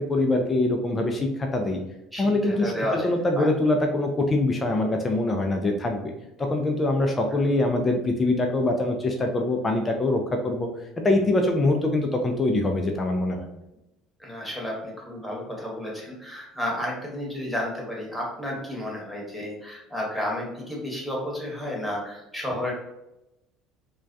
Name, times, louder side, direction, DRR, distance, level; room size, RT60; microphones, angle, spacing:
voice 1, 0.0-1.8 2.2-2.7 3.0-6.1 6.4-10.7 11.0-13.5, left 2 dB, 25° left, 3 dB, 0.4 m, -24 dB
voice 2, 2.1-3.1 3.4-3.5 14.2-22.7, left 1 dB, ahead, -3 dB, 1.0 m, -32 dB
2.2 x 2.2 x 2.5 m, 0.90 s
hypercardioid pair, 65°, 0 cm